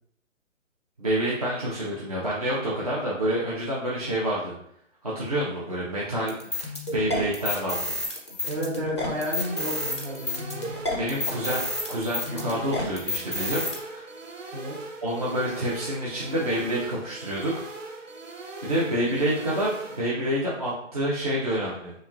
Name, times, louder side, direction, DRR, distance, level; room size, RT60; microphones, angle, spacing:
voice 1, 1.0-4.5 5.0-7.9 11.0-13.7 13.9-14.1 15.0-17.6 18.6-21.9, right 1 dB, 30° right, -7 dB, 0.5 m, -28 dB
sound 1, 6.3-13.8, left 2 dB, 25° left, 0.4 m, -30 dB
voice 2, 8.4-10.7 14.5-14.7, equal, 50° right, -4 dB, 1.3 m, -32 dB
sound 2, 9.1-20.1, right 2 dB, 80° right, 0.7 m, -40 dB
3.1 x 2.6 x 2.4 m, 0.73 s
figure-of-eight pair, 140°, 38 cm